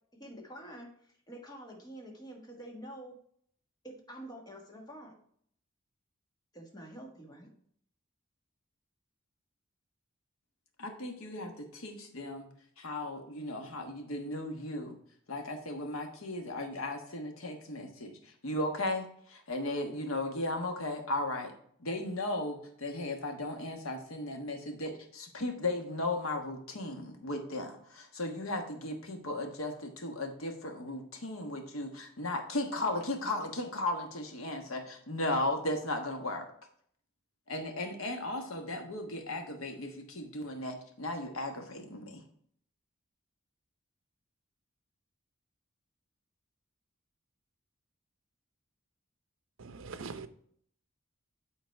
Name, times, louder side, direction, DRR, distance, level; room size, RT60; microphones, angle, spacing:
voice 1, 0.1-3.2 3.8-5.2 6.5-7.5, right 1 dB, 20° left, 0 dB, 1.6 m, -47 dB
voice 2, 10.8-12.5 12.8-15.0 15.3-21.5 21.8-36.5 37.5-42.2, left 2 dB, 75° left, 4 dB, 1.4 m, -36 dB
voice 3, 49.6-50.3, right 4 dB, 65° right, 11 dB, 0.6 m, -42 dB
9.1 x 4.0 x 4.6 m, 0.64 s
head